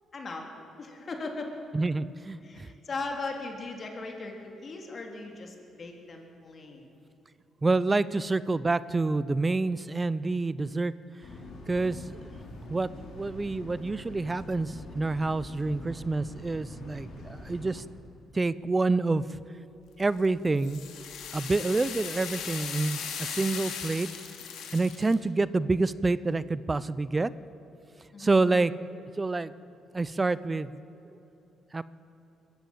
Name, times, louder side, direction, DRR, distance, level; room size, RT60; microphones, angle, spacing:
voice 1, 0.1-0.5 0.8-1.5 2.4-6.9 28.1-28.4, left 3 dB, 40° left, 2 dB, 3.6 m, -38 dB
voice 2, 1.7-2.7 7.6-10.9 11.7-12.3 12.7-17.8 18.3-19.2 20.0-20.8 21.3-24.1 24.7-27.3 28.2-29.5 29.9-30.8 31.1-31.2 31.7-31.8, right 3 dB, 25° right, 17 dB, 0.6 m, -28 dB
sound 1, 11.2-17.8, left 1 dB, 65° left, 3.7 m, -44 dB
sound 2, 20.0-25.1, left 7 dB, 85° left, 2.6 m, -38 dB
22.0 x 14.5 x 9.1 m, 2.9 s
cardioid pair, 90°, 0 cm